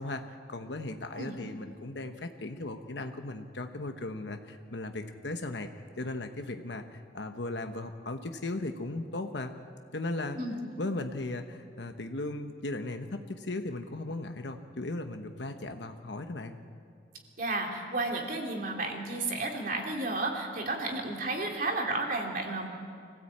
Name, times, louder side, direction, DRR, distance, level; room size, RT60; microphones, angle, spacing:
voice 1, 0.0-5.7 6.0-9.5 9.9-10.4 10.8-16.6, left 2 dB, 75° left, 6 dB, 1.1 m, -37 dB
voice 2, 17.4-22.7, right 2 dB, 50° right, 1 dB, 3.4 m, -32 dB
25.5 x 16.5 x 8.7 m, 2.2 s
head